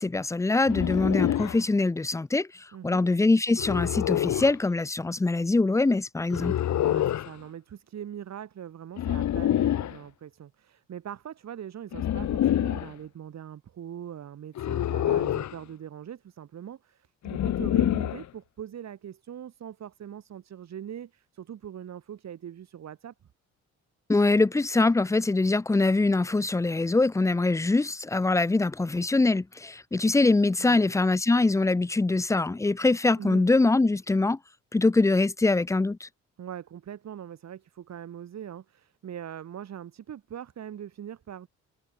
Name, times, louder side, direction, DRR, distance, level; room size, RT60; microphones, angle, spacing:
voice 1, 0.0-6.6 24.1-34.4 34.7-36.1, left 3 dB, 10° left, 0.5 m, -23 dB
sound 1, 0.7-1.6 3.6-4.6 6.3-7.3 9.0-10.0 11.9-12.9 14.6-15.6 17.2-18.3, left 11 dB, 65° left, 1.9 m, -26 dB
voice 2, 2.7-3.1 6.9-23.1 30.6-30.9 33.2-33.5 36.4-41.5, right 9 dB, 60° right, 4.8 m, -41 dB
cardioid pair, 90°, 30 cm